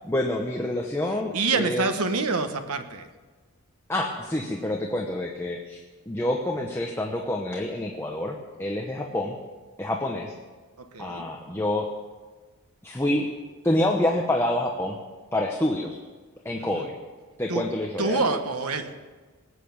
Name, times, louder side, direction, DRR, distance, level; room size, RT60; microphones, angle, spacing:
voice 1, 0.0-1.9 3.9-5.8 6.1-9.4 9.8-10.3 11.0-11.9 12.8-13.3 13.6-15.0 15.3-16.0 16.4-16.9 17.4-18.2, left 1 dB, 10° left, 0 dB, 0.9 m, -27 dB
voice 2, 1.3-3.1 10.8-11.3 16.6-16.9 17.5-17.6 18.0-18.9, right 3 dB, 90° right, 8 dB, 1.3 m, -27 dB
19.5 x 8.4 x 7.1 m, 1.3 s
head